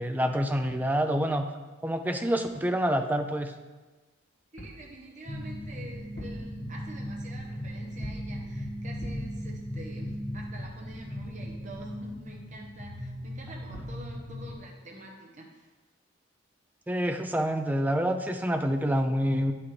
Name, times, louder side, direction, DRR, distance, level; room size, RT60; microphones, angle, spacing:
voice 1, 0.0-1.5 1.8-3.5 16.9-19.5, equal, 10° right, 6 dB, 0.4 m, -27 dB
voice 2, 4.5-15.7, right 1 dB, 40° right, -1 dB, 0.9 m, -47 dB
Pounding on glass, 4.6-4.9 6.0-6.5 8.0-8.4 9.0-9.4 13.4-13.5 13.7-14.1, equal, 60° left, 1.5 m, -42 dB
sound 1, 5.3-14.6, equal, 35° left, 1.1 m, -38 dB
9.1 x 5.8 x 3.3 m, 1.3 s
head